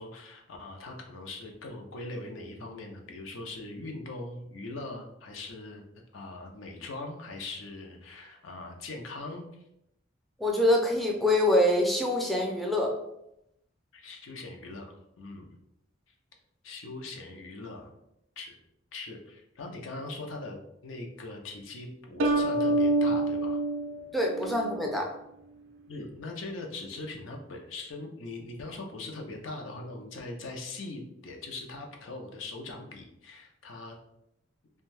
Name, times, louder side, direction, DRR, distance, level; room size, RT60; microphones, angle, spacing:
voice 1, 0.0-5.8 6.1-9.5 13.9-15.5 16.6-17.9 18.4-18.6 18.9-20.6 20.8-23.6 25.9-34.0, left 2 dB, 80° left, 2 dB, 0.5 m, -41 dB
voice 2, 10.4-13.0 24.1-25.1, left 1 dB, ahead, -1 dB, 0.4 m, -25 dB
sound 1, 22.2-24.8, right 2 dB, 70° right, 0.4 m, -27 dB
2.6 x 2.2 x 3.2 m, 0.81 s
head